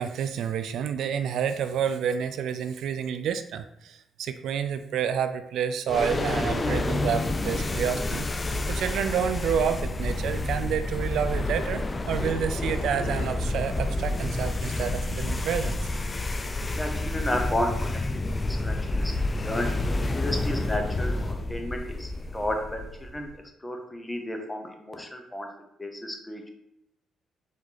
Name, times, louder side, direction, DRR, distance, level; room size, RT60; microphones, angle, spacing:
voice 1, 0.0-8.3 8.7-15.8, right 8 dB, 75° right, 10 dB, 0.3 m, -29 dB
sound 1, 5.9-23.2, left 2 dB, 25° left, 0.3 m, -29 dB
voice 2, 16.8-18.0 18.4-19.1 19.4-19.7 20.1-23.3 23.6-25.5 25.8-26.5, left 1 dB, 10° left, 3 dB, 0.9 m, -32 dB
4.9 x 2.7 x 4.0 m, 0.81 s
cardioid pair, 90°, 0 cm